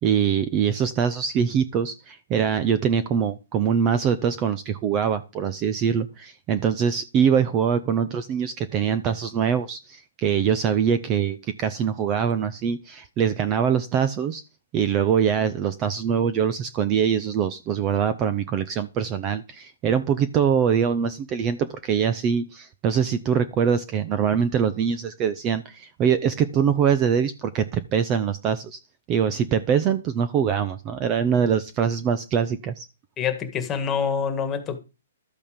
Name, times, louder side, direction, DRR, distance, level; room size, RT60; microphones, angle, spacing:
voice 1, 0.0-14.4 14.7-28.8 29.1-32.8, right 7 dB, 25° right, 0.7 m, -23 dB
voice 2, 33.2-34.8, left 6 dB, 15° left, 1.9 m, -26 dB
12.5 x 8.4 x 5.2 m
hypercardioid pair, 160°, 0 cm